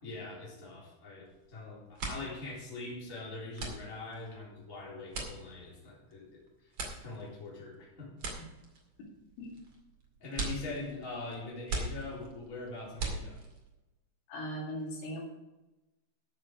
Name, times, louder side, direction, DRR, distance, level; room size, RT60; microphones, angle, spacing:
voice 1, 0.0-6.4 7.0-8.1 10.2-13.4, left 3 dB, 15° left, -6 dB, 3.6 m, -43 dB
sound 1, 1.3-1.5 1.8-13.7, right 3 dB, 45° right, 1.9 m, -41 dB
voice 2, 14.3-15.3, equal, 75° left, -2 dB, 4.7 m, -38 dB
13.0 x 7.6 x 4.8 m, 1.0 s
omnidirectional pair, 5.8 m